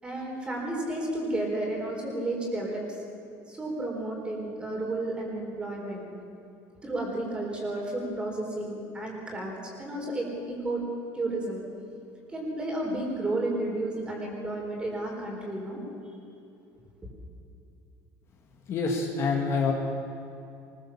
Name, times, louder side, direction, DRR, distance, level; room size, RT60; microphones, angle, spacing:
voice 1, 0.0-2.8 3.5-6.0 6.8-10.8 11.1-11.6 12.3-15.8, right 2 dB, 10° right, -1 dB, 4.4 m, -32 dB
voice 2, 18.7-19.7, left 4 dB, 35° left, 1 dB, 2.1 m, -26 dB
23.5 x 21.0 x 7.3 m, 2.7 s
cardioid pair, 175°, 8 cm